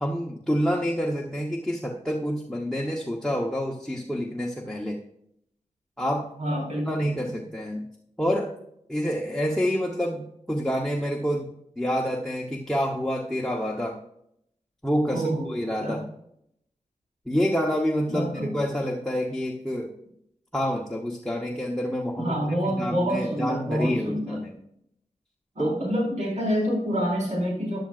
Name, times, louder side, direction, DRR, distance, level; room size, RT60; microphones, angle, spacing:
voice 1, 0.0-5.0 6.0-6.3 6.8-7.9 8.2-8.5 8.9-14.0 14.8-16.0 17.3-19.9 20.5-24.5 25.6-25.7, equal, 5° left, 0 dB, 1.0 m, -28 dB
voice 2, 6.4-7.3 15.1-15.5 15.8-16.0 18.1-18.5 22.2-24.4 25.5-27.8, equal, 70° right, -4 dB, 4.9 m, -27 dB
15.0 x 10.5 x 2.5 m, 0.76 s
wide cardioid pair, 70°, 13 cm